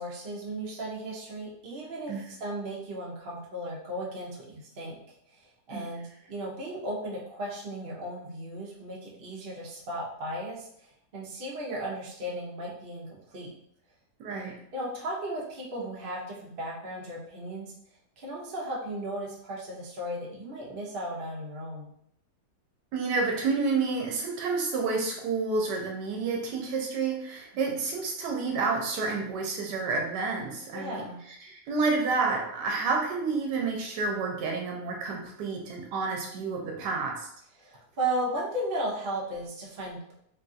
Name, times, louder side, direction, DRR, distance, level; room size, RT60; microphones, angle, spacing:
voice 1, 0.0-5.0 5.3-13.5 14.3-17.7 18.2-21.9 27.5-27.8 30.7-31.2 37.6-40.1, right 1 dB, 45° right, -4 dB, 0.7 m, -36 dB
voice 2, 14.2-14.6 22.9-37.3, right 4 dB, 85° right, 1 dB, 1.2 m, -29 dB
3.3 x 2.4 x 2.6 m, 0.71 s
omnidirectional pair, 1.8 m